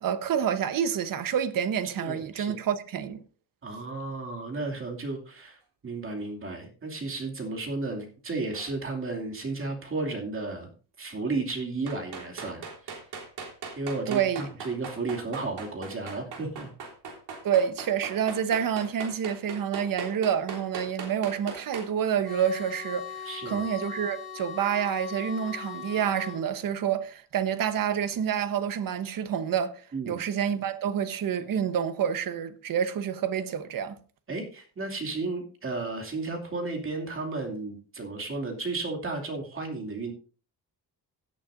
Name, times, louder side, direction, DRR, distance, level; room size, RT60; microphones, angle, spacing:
voice 1, 0.0-3.2 14.1-14.4 17.4-29.7 30.1-34.0, right 8 dB, 60° right, 1.1 m, -28 dB
voice 2, 2.0-2.5 3.6-5.6 5.8-10.7 11.0-12.9 13.7-16.7 23.2-23.6 29.9-30.2 34.3-40.1, right 3 dB, 35° right, 2.6 m, -33 dB
sound 1, 8.5-8.8 11.9-21.9, right 5 dB, 85° right, 3.6 m, -39 dB
sound 2, 22.2-26.4, left 8 dB, 75° left, 6.1 m, -40 dB
17.0 x 8.7 x 2.6 m
wide cardioid pair, 175°, 39 cm